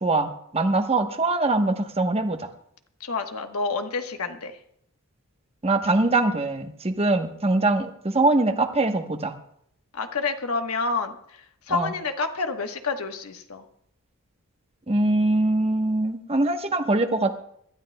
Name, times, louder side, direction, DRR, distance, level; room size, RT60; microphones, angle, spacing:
voice 1, 0.0-2.5 5.6-9.3 11.7-11.9 14.9-17.4, right 2 dB, 25° right, 6 dB, 1.0 m, -23 dB
voice 2, 3.0-4.6 9.9-11.1 11.7-13.6, left 4 dB, 75° left, 6 dB, 1.2 m, -28 dB
25.5 x 12.5 x 2.2 m, 0.69 s
head